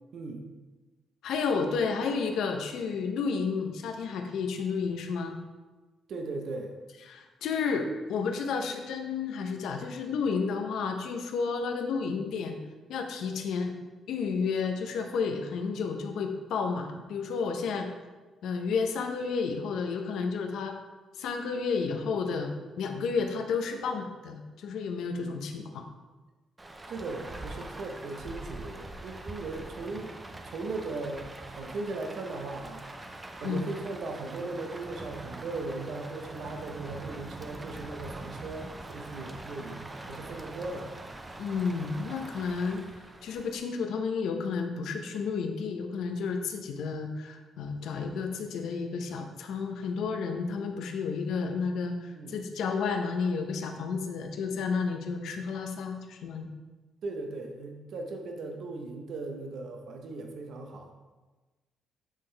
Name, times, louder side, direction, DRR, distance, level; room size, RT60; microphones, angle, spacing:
voice 1, 1.2-5.4 7.1-12.6 12.9-13.7 14.1-17.9 18.4-20.8 21.1-25.8 33.4-33.6 41.4-42.8 43.2-56.5, left 5 dB, 80° left, 5 dB, 0.6 m, -31 dB
voice 2, 6.1-6.7 25.2-25.4 26.9-30.1 30.4-32.9 33.4-40.9 52.2-52.4 57.0-60.9, right 3 dB, 65° right, 3 dB, 0.7 m, -38 dB
Rain, 26.6-43.6, right 2 dB, 20° right, 0.5 m, -43 dB
8.1 x 3.8 x 3.3 m, 1.2 s
cardioid pair, 90°, 0 cm